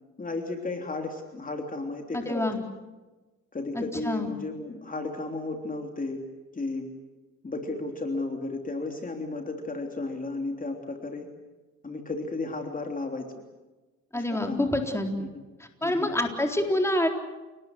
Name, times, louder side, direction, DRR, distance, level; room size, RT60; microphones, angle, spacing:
voice 1, 0.2-2.5 3.5-6.2 6.5-6.9 7.4-11.3 11.8-13.2 14.1-15.4 15.8-16.1, left 3 dB, 25° left, 3 dB, 3.4 m, -34 dB
voice 2, 2.1-2.6 3.7-4.3 14.1-15.1 15.6-17.1, left 1 dB, 10° left, 4 dB, 4.0 m, -27 dB
29.0 x 19.5 x 8.0 m, 1.2 s
cardioid pair, 90°, 30 cm